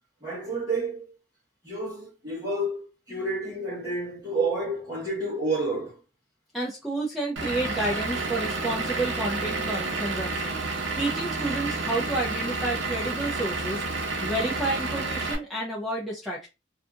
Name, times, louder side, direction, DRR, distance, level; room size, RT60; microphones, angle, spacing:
voice 1, 0.2-1.1 1.6-6.0, right 2 dB, 20° right, 0.9 m, -30 dB
voice 2, 6.5-13.8 14.2-16.5, right 1 dB, ahead, 0.4 m, -30 dB
Vehicle / Engine, 7.4-15.4, right 3 dB, 80° right, 0.7 m, -30 dB
2.7 x 2.5 x 2.3 m
head